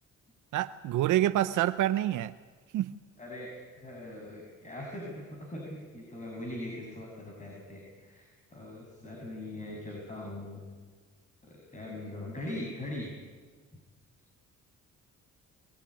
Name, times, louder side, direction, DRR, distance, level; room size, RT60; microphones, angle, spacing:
voice 1, 0.5-2.3 2.7-2.9, right 13 dB, 80° right, 10 dB, 0.8 m, -27 dB
voice 2, 3.2-10.6 11.4-13.1, left 1 dB, 25° left, 0 dB, 6.7 m, -41 dB
23.5 x 19.5 x 10.0 m, 1.5 s
cardioid pair, 90°, 30 cm